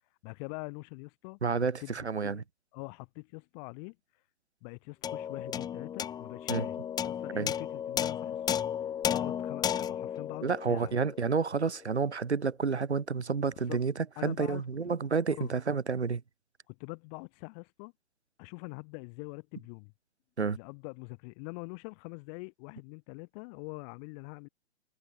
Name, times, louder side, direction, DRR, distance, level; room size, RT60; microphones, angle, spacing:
voice 1, 0.2-1.9 2.2-2.4 2.7-4.2 4.6-10.9 13.7-13.8 14.2-14.6 15.3-15.5 16.7-17.9 18.4-19.9 20.5-24.5, left 36 dB, 35° left, 7.3 m, -44 dB
voice 2, 1.4-2.4 6.5-6.6 7.3-7.5 10.4-13.9 14.2-16.2 20.4-20.6, right 5 dB, 80° right, 2.5 m, -30 dB
sound 1, 5.0-11.6, left 9 dB, 10° left, 0.8 m, -34 dB
figure-of-eight pair, 115°, 33 cm